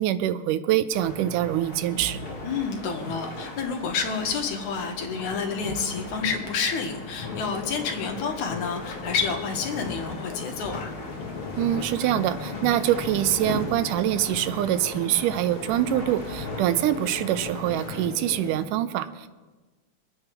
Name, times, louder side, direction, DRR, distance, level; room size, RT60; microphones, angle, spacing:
voice 1, 0.0-2.2 11.6-19.3, right 12 dB, 85° right, 12 dB, 2.2 m, -25 dB
sound 1, 0.9-18.1, left 2 dB, 25° left, 1.3 m, -39 dB
voice 2, 2.4-10.9, left 5 dB, 70° left, 3 dB, 2.8 m, -29 dB
sound 2, 7.2-18.7, left 4 dB, 50° left, 1.6 m, -38 dB
23.0 x 8.8 x 4.7 m, 1.3 s
omnidirectional pair, 3.7 m